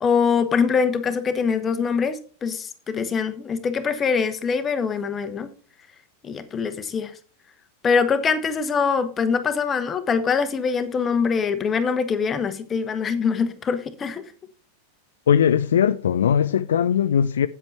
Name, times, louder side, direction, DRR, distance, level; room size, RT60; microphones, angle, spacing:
voice 1, 0.0-5.5 6.2-7.1 7.8-14.2, left 5 dB, 20° left, 1.1 m, -23 dB
voice 2, 15.3-17.5, left 8 dB, 65° left, 0.4 m, -19 dB
8.7 x 7.8 x 4.5 m
figure-of-eight pair, 90°, 0 cm